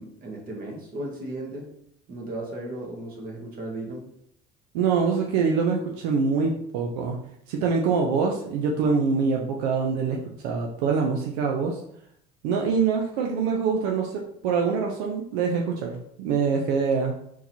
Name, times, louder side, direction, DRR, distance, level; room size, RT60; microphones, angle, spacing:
voice 1, 0.0-1.7 2.1-4.1, right 1 dB, 50° right, 0 dB, 1.3 m, -35 dB
voice 2, 4.7-7.2 7.5-11.8 12.4-17.2, right 5 dB, 80° right, 0 dB, 0.5 m, -25 dB
3.7 x 3.0 x 2.7 m, 0.71 s
hypercardioid pair, 75°, 20 cm